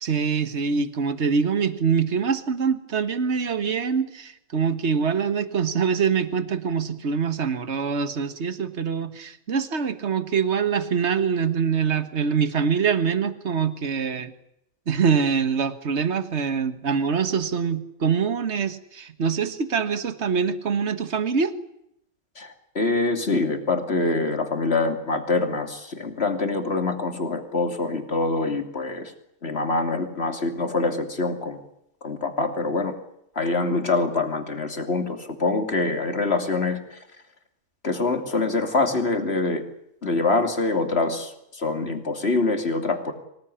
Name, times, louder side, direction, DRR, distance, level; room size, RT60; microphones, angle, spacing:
voice 1, 0.0-14.3 14.9-21.5, right 6 dB, 65° right, 11 dB, 1.8 m, -24 dB
voice 2, 22.4-29.1 29.4-31.6 32.0-32.9 33.3-37.0 37.8-39.6 40.0-43.1, left 3 dB, 60° left, 6 dB, 3.1 m, -25 dB
25.5 x 18.5 x 10.0 m, 0.80 s
omnidirectional pair, 1.2 m